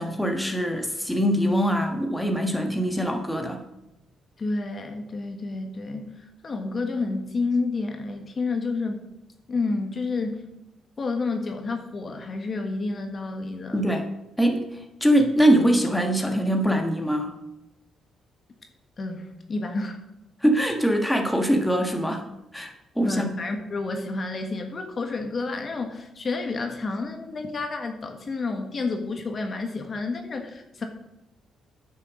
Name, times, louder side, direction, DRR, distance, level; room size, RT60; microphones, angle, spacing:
voice 1, 0.0-3.6 13.7-14.1 14.4-17.3 20.4-22.2 22.5-23.3, equal, 5° left, 3 dB, 1.5 m, -23 dB
voice 2, 4.4-9.1 9.5-10.5 11.0-13.9 19.0-20.0 23.0-30.8, left 3 dB, 40° left, 5 dB, 1.4 m, -30 dB
9.4 x 6.6 x 6.3 m, 0.91 s
cardioid pair, 90°, 0 cm